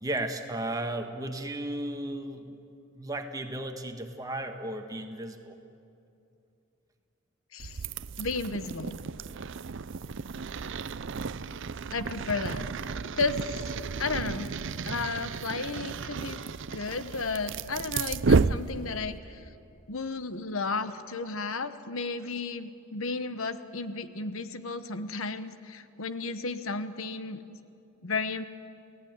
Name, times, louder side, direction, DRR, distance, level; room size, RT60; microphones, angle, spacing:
voice 1, 0.0-2.6 3.0-5.6, right 1 dB, 15° right, 5 dB, 1.7 m, -34 dB
voice 2, 7.5-7.8 8.2-9.0 11.9-12.7 13.1-13.4 14.0-14.5 14.8-16.4 16.7-19.4 19.9-27.6 28.0-28.4, left 4 dB, 75° left, 11 dB, 1.2 m, -33 dB
sound 1, 7.6-19.2, right 4 dB, 60° right, 0.5 m, -32 dB
29.0 x 17.5 x 9.6 m, 2.7 s
head